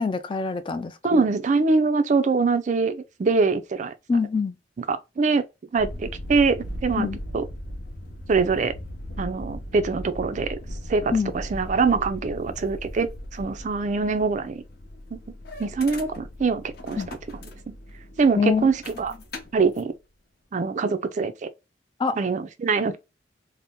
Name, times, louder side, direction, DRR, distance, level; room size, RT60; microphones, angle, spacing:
voice 1, 0.0-1.2 4.1-4.5 7.0-7.2 11.1-11.3 17.0-17.1 18.4-18.7 22.0-22.2, left 5 dB, 30° left, 0.3 m, -25 dB
voice 2, 1.0-3.9 4.9-5.4 5.7-7.4 8.3-8.7 9.2-10.6 10.9-14.6 15.1-15.2 15.6-17.0 17.7-17.8 18.2-19.1 19.5-19.9 20.5-21.5 22.2-23.0, right 4 dB, 45° right, 0.4 m, -23 dB
sound 1, 5.8-19.8, equal, 60° left, 0.8 m, -38 dB
2.6 x 2.1 x 3.5 m
head